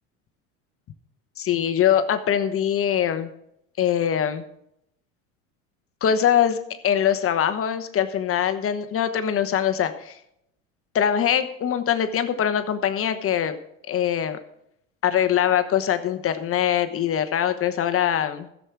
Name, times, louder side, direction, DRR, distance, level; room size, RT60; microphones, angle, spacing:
voice 1, 1.4-3.3 3.8-4.4 6.0-6.6 6.8-10.2 10.9-13.5 13.9-14.4 15.0-18.5, left 9 dB, 35° left, 10 dB, 1.1 m, -22 dB
14.5 x 7.5 x 4.7 m, 0.76 s
hypercardioid pair, 80°, 40 cm